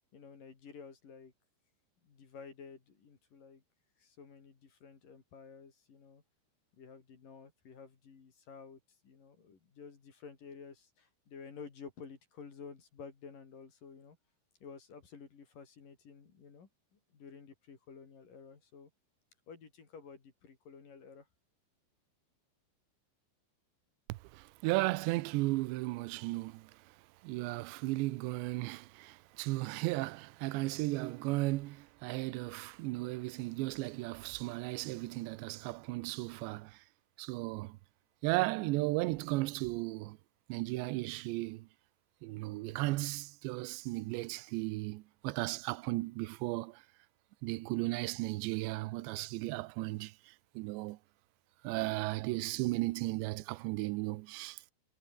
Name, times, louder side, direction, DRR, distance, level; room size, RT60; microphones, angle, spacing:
voice 1, 0.1-1.3 2.0-3.6 4.0-6.2 6.8-14.2 14.6-18.9 19.5-21.3, left 5 dB, 45° left, 4.9 m, -52 dB
voice 2, 24.1-26.7 27.2-36.8 37.2-37.8 38.2-40.2 40.5-41.7 42.2-46.8 47.4-51.0 51.6-54.7, right 20 dB, 80° right, 2.8 m, -35 dB
omnidirectional pair, 5.6 m